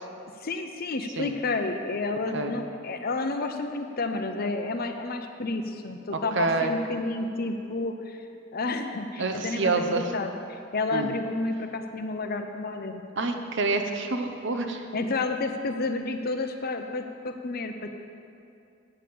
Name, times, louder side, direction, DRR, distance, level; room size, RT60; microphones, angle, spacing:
voice 1, 0.4-8.2 8.5-13.0 14.9-17.9, left 3 dB, 45° left, 6 dB, 0.7 m, -30 dB
voice 2, 6.4-6.7 9.2-10.0 10.9-11.1 13.2-14.8, right 3 dB, 60° right, 5 dB, 0.9 m, -27 dB
8.9 x 7.0 x 7.7 m, 2.5 s
head